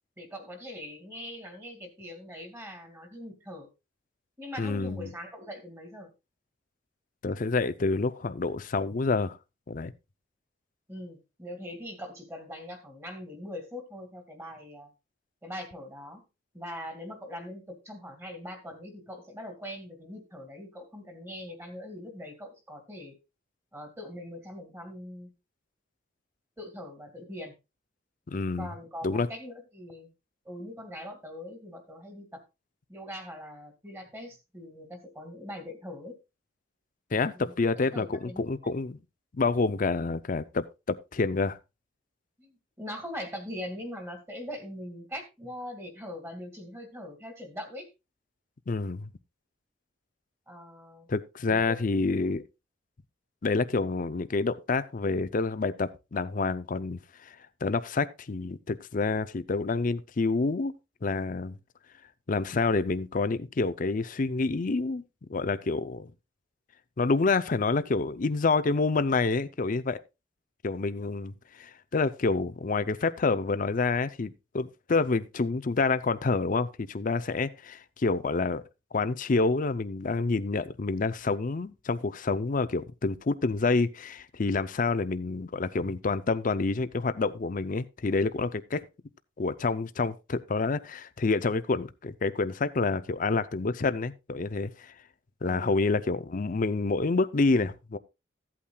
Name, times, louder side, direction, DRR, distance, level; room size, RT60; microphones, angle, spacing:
voice 1, 0.2-3.7 4.4-6.1 10.9-14.9 15.4-16.2 16.5-23.2 23.7-25.3 26.6-27.5 28.6-30.1 30.4-32.4 32.9-36.2 37.3-38.8 42.4-47.9 50.5-51.1 51.5-51.8 95.4-95.7, left 1 dB, 15° right, 2.2 m, -42 dB
voice 2, 4.6-5.1 7.2-9.4 9.7-9.9 28.3-28.7 29.0-29.3 37.1-39.0 39.3-41.6 48.7-49.1 51.1-52.4 53.4-57.4 57.6-60.7 61.0-61.6 62.3-65.0 65.3-66.1 67.0-70.0 70.6-78.6 78.9-88.8 89.4-94.9 95.4-98.0, left 3 dB, 45° left, 0.5 m, -28 dB
15.0 x 8.6 x 2.3 m
head